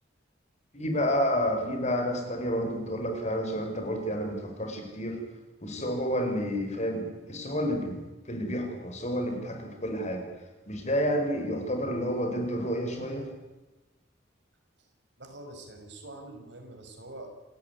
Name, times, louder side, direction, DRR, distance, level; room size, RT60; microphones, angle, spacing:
voice 1, 0.7-5.2 5.6-10.2 10.7-13.3, equal, 40° left, 5 dB, 5.1 m, -30 dB
voice 2, 15.2-17.4, right 1 dB, 65° right, 4 dB, 5.7 m, -45 dB
28.0 x 15.0 x 9.6 m, 1.1 s
head